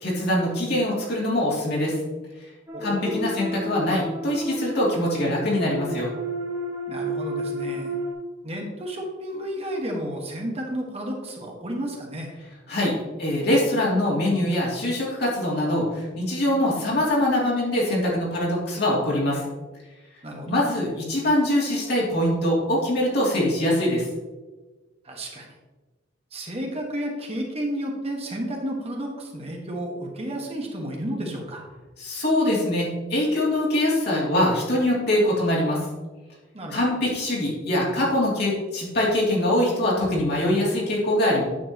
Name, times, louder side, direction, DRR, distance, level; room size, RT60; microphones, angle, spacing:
voice 1, 0.0-2.0 2.8-6.1 12.7-12.9 13.2-19.4 20.5-24.1 32.0-35.8 36.7-41.4, left 1 dB, 55° left, -4 dB, 2.8 m, -23 dB
sound 1, 2.7-8.1, right 1 dB, 15° right, 1.6 m, -32 dB
voice 2, 2.7-3.2 6.9-8.0 8.4-12.3 20.2-20.5 25.0-25.5 26.3-31.6 36.5-36.8, equal, 35° right, 0 dB, 1.5 m, -32 dB
9.7 x 7.3 x 3.0 m, 1.2 s
head